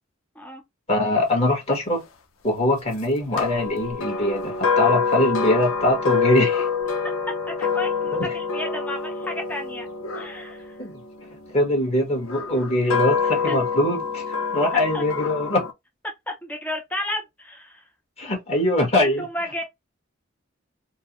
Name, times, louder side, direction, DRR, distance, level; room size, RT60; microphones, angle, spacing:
voice 1, 0.9-2.0 2.4-6.7 8.1-8.3 10.8-11.0 11.5-14.2 14.5-15.6 18.2-19.3, left 1 dB, 30° left, 1.5 m, -22 dB
sound 1, 3.3-11.5 12.2-15.7, left 5 dB, 90° left, 0.7 m, -26 dB
voice 2, 7.5-9.9 10.2-10.8 12.8-12.9 13.5-13.6 14.9-15.0 16.3-17.9 19.0-19.6, left 1 dB, 10° left, 0.6 m, -33 dB
4.4 x 2.1 x 3.0 m
head